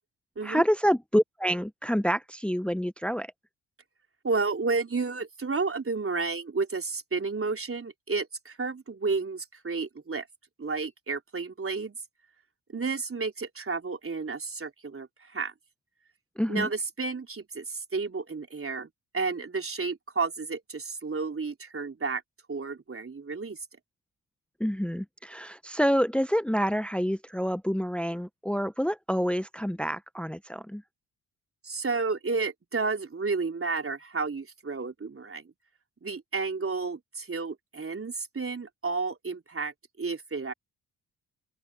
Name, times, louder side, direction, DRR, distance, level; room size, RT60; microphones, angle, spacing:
voice 1, 0.4-3.3 16.4-16.7 24.6-30.8, equal, ahead, 1.4 m, -27 dB
voice 2, 4.2-10.3 10.6-12.0 12.7-15.5 16.5-18.9 19.1-22.2 22.5-23.6 31.6-35.5 36.0-40.5, right 4 dB, 25° right, 3.8 m, -31 dB
open air
figure-of-eight pair, 40°, 47 cm